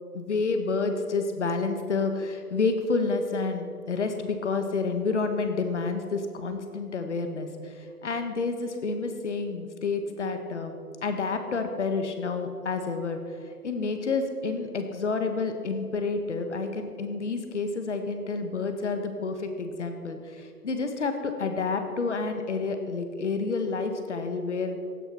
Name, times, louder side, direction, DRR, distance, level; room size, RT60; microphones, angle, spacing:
voice 1, 0.1-24.8, left 4 dB, 45° left, 7 dB, 1.7 m, -29 dB
16.0 x 9.4 x 5.9 m, 2.3 s
figure-of-eight pair, 155°, 47 cm